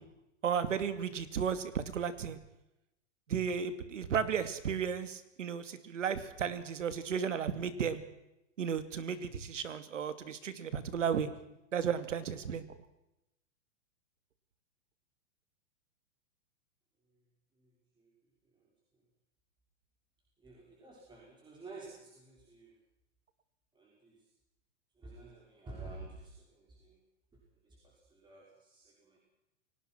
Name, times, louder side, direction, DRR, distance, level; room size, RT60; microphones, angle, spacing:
voice 1, 0.4-2.4 3.3-8.0 8.6-11.3 11.7-12.7, right 7 dB, 90° right, 12 dB, 2.5 m, -34 dB
voice 2, 17.6-18.1 18.6-18.7 20.4-22.8 23.7-24.3 25.0-27.0 27.6-29.2, right 3 dB, 10° right, -3 dB, 5.8 m, -51 dB
29.5 x 18.0 x 6.1 m, 0.90 s
hypercardioid pair, 140°, 36 cm